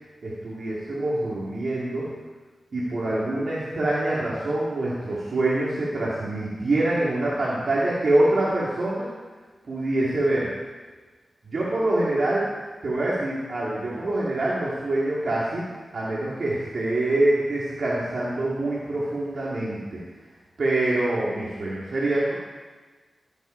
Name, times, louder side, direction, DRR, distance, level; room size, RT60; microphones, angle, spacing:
voice 1, 0.2-2.1 2.7-9.1 9.7-10.5 11.4-12.5 12.8-15.7 15.9-20.0 20.6-22.3, right 2 dB, 55° right, -7 dB, 2.4 m, -25 dB
16.5 x 8.2 x 4.5 m, 1.3 s
wide cardioid pair, 145°, 0 cm